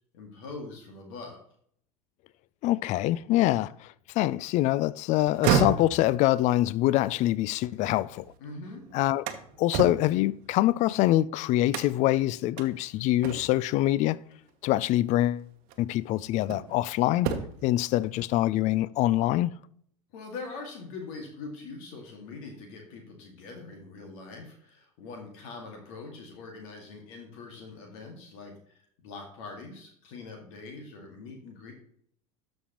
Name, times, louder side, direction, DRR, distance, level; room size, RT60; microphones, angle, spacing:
voice 1, 0.1-1.4 8.4-8.9 20.1-31.7, left 3 dB, 60° left, 2.0 m, -43 dB
voice 2, 2.6-8.2 8.9-9.2 9.6-14.2 14.6-15.5 15.8-17.3 17.6-19.5, left 15 dB, 40° left, 0.4 m, -25 dB
sound 1, 5.2-8.4 8.8-11.1 11.7-12.2 12.6-12.7 13.2-13.7 15.0-15.1 15.7-16.8 17.1-17.7, right 7 dB, 55° right, 1.0 m, -31 dB
12.5 x 5.3 x 3.0 m
figure-of-eight pair, 75°, 18 cm